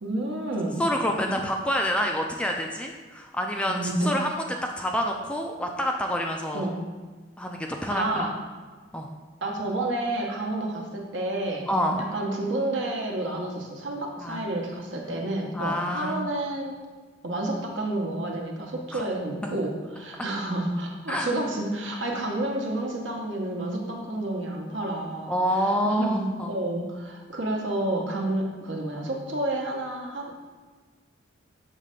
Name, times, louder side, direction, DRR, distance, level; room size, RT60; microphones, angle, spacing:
voice 1, 0.0-0.8 3.7-4.1 6.5-6.8 7.9-8.3 9.4-11.7 12.1-16.7 17.2-25.4 25.6-30.3, right 1 dB, 65° right, 0 dB, 1.0 m, -30 dB
voice 2, 0.8-6.7 7.4-8.3 8.9-9.1 11.7-12.0 14.2-14.7 15.5-16.3 18.9-19.0 19.4-19.6 21.1-21.3 25.3-26.5, equal, 5° left, 2 dB, 0.3 m, -28 dB
6.5 x 3.2 x 5.2 m, 1.4 s
head